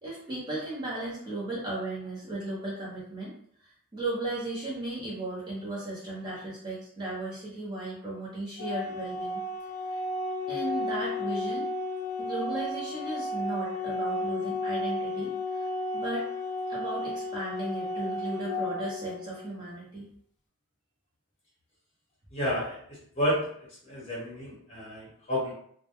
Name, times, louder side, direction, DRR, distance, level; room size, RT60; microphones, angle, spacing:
voice 1, 0.0-3.3 3.6-9.4 9.9-10.0 10.5-11.7 12.2-15.6 15.9-16.3 16.7-20.1, right 1 dB, 20° right, -6 dB, 0.6 m, -35 dB
Organ, 8.6-19.6, left 2 dB, 50° left, 0.5 m, -33 dB
voice 2, 22.3-23.5 23.8-25.5, equal, 30° left, -7 dB, 1.0 m, -31 dB
2.1 x 2.1 x 2.9 m, 0.63 s
head